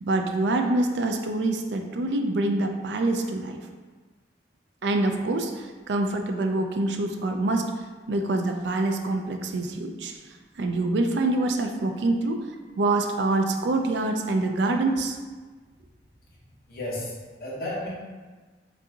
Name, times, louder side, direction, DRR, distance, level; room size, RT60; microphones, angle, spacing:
voice 1, 0.0-3.6 4.8-7.7 8.1-10.1 10.6-12.4 12.8-15.2, right 2 dB, 70° right, 4 dB, 0.4 m, -25 dB
voice 2, 16.7-17.9, left 1 dB, 55° left, -5 dB, 1.0 m, -33 dB
5.2 x 2.6 x 2.7 m, 1.4 s
head